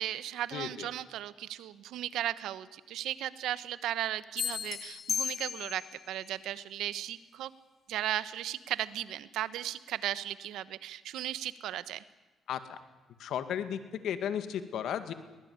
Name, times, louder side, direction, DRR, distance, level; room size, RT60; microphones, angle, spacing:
voice 1, 0.0-7.5 7.9-12.0, right 12 dB, 85° right, 15 dB, 1.1 m, -36 dB
voice 2, 0.5-0.9 12.5-12.6 13.2-15.1, left 9 dB, 75° left, 10 dB, 2.2 m, -34 dB
sound 1, 4.4-6.0, left 8 dB, 60° left, 0.8 m, -35 dB
23.0 x 19.5 x 9.7 m, 1.2 s
cardioid pair, 90°, 0 cm